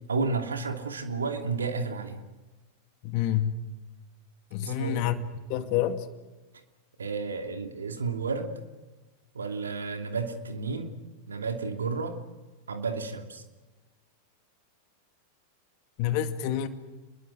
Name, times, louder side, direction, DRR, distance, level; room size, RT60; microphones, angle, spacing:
voice 1, 0.1-2.2 4.6-5.0 7.0-8.5 9.3-10.9 11.3-12.2 12.7-13.4, right 4 dB, 70° right, 2.8 m, -31 dB
voice 2, 3.0-3.6 4.5-5.1 5.5-6.0 16.0-16.7, left 11 dB, 45° left, 2.2 m, -27 dB
29.0 x 22.0 x 6.5 m
figure-of-eight pair, 90°, 0 cm